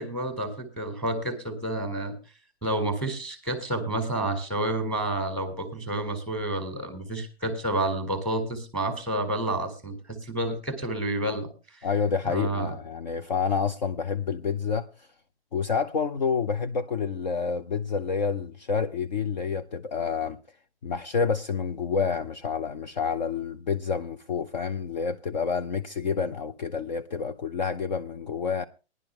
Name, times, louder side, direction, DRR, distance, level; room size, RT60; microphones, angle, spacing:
voice 1, 0.0-2.2 2.6-11.9 12.2-12.7, right 1 dB, 5° left, 1.7 m, -30 dB
voice 2, 11.8-15.1 15.5-20.4 20.8-28.6, left 5 dB, 40° left, 0.7 m, -28 dB
17.5 x 11.0 x 3.2 m
hypercardioid pair, 165°, 33 cm